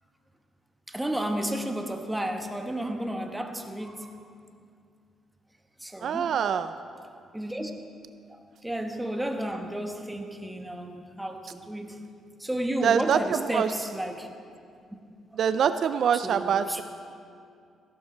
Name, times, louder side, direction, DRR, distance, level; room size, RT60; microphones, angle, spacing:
voice 1, 0.9-4.1 5.8-6.3 7.3-7.7 8.3-12.0 12.4-14.3 15.3-15.4 16.2-16.8, right 1 dB, 5° right, 4 dB, 1.3 m, -32 dB
voice 2, 6.0-6.7 12.8-13.7 15.3-16.8, right 8 dB, 65° right, 11 dB, 0.4 m, -24 dB
15.5 x 12.0 x 4.5 m, 2.3 s
cardioid pair, 90°, 0 cm